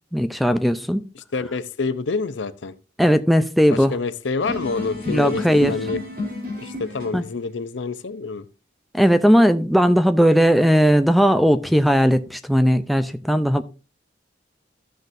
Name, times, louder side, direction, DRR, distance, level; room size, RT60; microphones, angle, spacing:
voice 1, 0.1-1.0 3.0-3.9 5.1-5.7 7.1-7.2 8.9-13.6, equal, ahead, 0.5 m, -17 dB
voice 2, 1.1-2.7 3.7-6.0 6.6-8.4, left 4 dB, 85° left, 0.7 m, -27 dB
sound 1, 4.4-7.3, left 2 dB, 50° right, 3.2 m, -31 dB
14.0 x 6.5 x 2.6 m
head